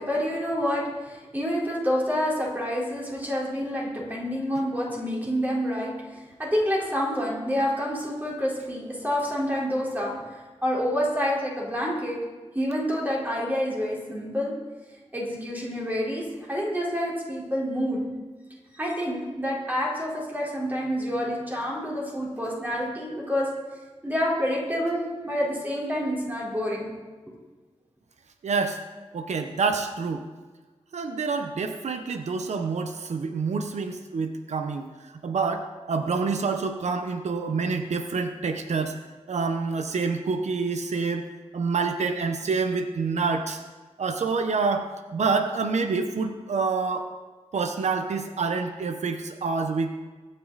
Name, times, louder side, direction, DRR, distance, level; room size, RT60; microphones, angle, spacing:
voice 1, 0.0-10.2 10.6-12.2 12.5-14.5 15.1-18.0 18.7-23.5 24.0-26.9, equal, 15° right, -4 dB, 4.2 m, -28 dB
voice 2, 28.4-28.8 29.1-30.3 30.9-34.9 35.2-38.9 39.3-41.2 41.5-43.6 44.0-47.1 47.5-50.0, right 4 dB, 90° right, 6 dB, 1.0 m, -27 dB
23.0 x 9.2 x 4.1 m, 1.3 s
wide cardioid pair, 140°, 11 cm